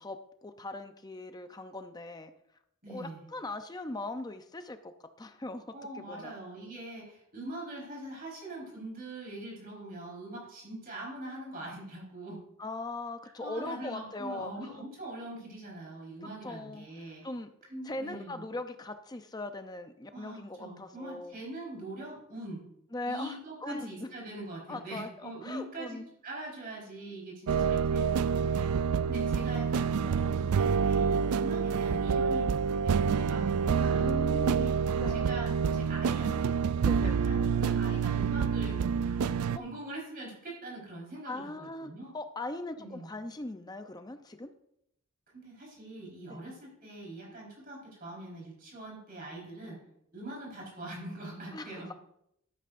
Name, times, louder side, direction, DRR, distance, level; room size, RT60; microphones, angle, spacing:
voice 1, 0.0-2.3 2.9-4.9 5.2-6.3 12.6-14.7 16.4-17.5 17.8-21.4 22.9-24.1 24.7-26.1 34.0-35.3 36.8-37.2 41.2-44.5 46.3-46.4 51.5-51.9, left 2 dB, 20° left, 8 dB, 0.6 m, -40 dB
voice 2, 2.8-3.3 5.7-12.4 13.4-17.2 17.7-18.5 20.1-22.6 23.0-28.7 29.1-32.5 32.8-34.7 35.1-36.5 37.0-38.8 39.0-39.1 39.5-42.1 42.8-43.1 45.3-49.8 50.1-51.9, right 1 dB, 40° right, -3 dB, 4.4 m, -43 dB
sound 1, 27.5-39.6, right 6 dB, 80° right, 0.4 m, -27 dB
12.5 x 12.0 x 2.6 m, 0.77 s
head